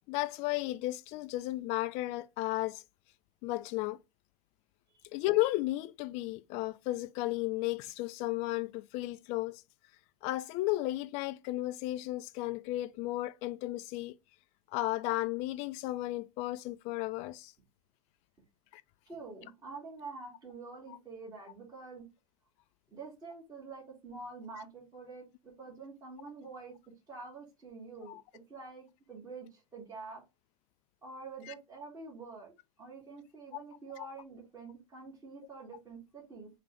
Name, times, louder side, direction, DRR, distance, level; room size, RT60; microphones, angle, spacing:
voice 1, 0.0-2.8 3.4-4.0 5.1-9.6 10.2-14.1 14.7-17.5 18.7-18.8 28.1-28.2 31.5-31.6, left 17 dB, 40° left, 0.4 m, -34 dB
voice 2, 19.1-22.1 22.9-26.8 27.1-28.2 28.5-30.2 31.0-32.5 32.8-36.5, right 4 dB, 20° right, 2.8 m, -47 dB
5.0 x 2.9 x 3.4 m
hypercardioid pair, 105°, 18 cm